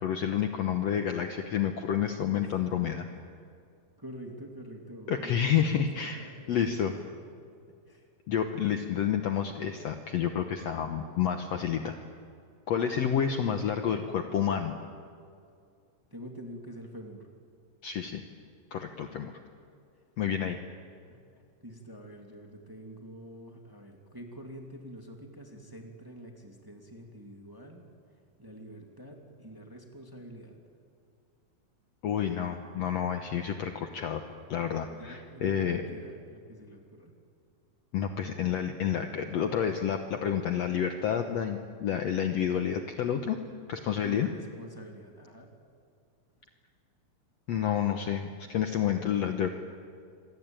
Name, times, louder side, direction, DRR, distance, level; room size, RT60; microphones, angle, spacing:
voice 1, 0.0-3.0 5.1-6.9 8.3-11.9 12.7-14.7 17.8-18.2 18.7-19.3 20.2-20.6 32.0-34.2 34.5-35.8 37.9-43.4 43.7-44.3 47.5-49.5, left 8 dB, 65° left, 6 dB, 1.9 m, -29 dB
voice 2, 4.0-7.0 7.9-8.1 16.1-17.3 20.2-20.6 21.1-21.2 21.6-27.9 28.4-30.6 34.8-37.1 44.0-45.5, right 1 dB, 5° right, 2 dB, 2.2 m, -46 dB
27.0 x 23.0 x 9.1 m, 2.3 s
omnidirectional pair, 3.9 m